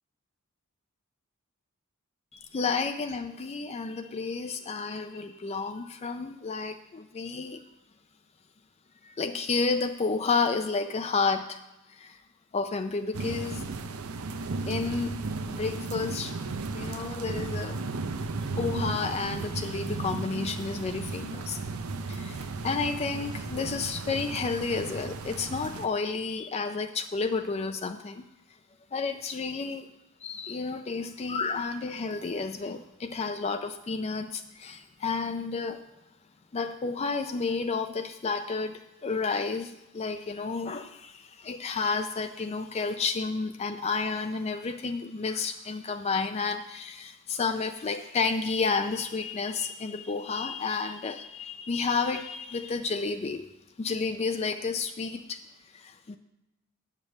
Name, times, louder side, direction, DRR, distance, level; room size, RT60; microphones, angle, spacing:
voice 1, 2.3-7.6 9.0-11.6 11.9-12.2 12.5-13.6 14.7-15.2 15.5-16.4 16.7-17.8 18.6-21.6 22.1-28.2 28.9-29.9 30.2-35.8 36.5-53.4 53.8-55.4 55.7-56.2, left 4 dB, 30° left, 7 dB, 0.4 m, -31 dB
sound 1, 13.1-25.9, right 3 dB, 75° right, 0.6 m, -35 dB
8.5 x 5.2 x 7.3 m, 0.95 s
head